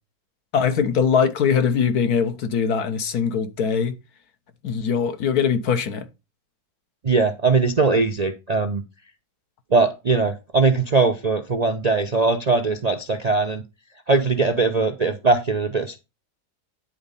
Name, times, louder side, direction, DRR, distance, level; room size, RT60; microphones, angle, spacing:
voice 1, 0.5-3.9 4.6-6.0, left 6 dB, 70° left, 1.4 m, -21 dB
voice 2, 7.0-8.8 9.7-13.6 14.1-16.0, right 3 dB, 45° right, 0.5 m, -20 dB
10.0 x 4.1 x 5.4 m
omnidirectional pair, 1.7 m